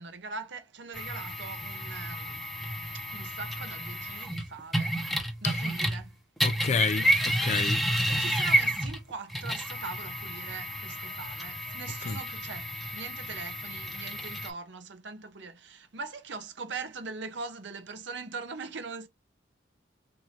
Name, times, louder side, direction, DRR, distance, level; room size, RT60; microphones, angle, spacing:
voice 1, 0.0-2.4 2.9-6.2 8.1-19.1, right 4 dB, 70° right, 0.8 m, -41 dB
sound 1, 0.9-6.1 6.4-14.5, right 1 dB, ahead, 0.9 m, -30 dB
voice 2, 6.4-7.8 12.0-12.2, left 5 dB, 40° left, 0.4 m, -29 dB
4.8 x 2.6 x 2.8 m
head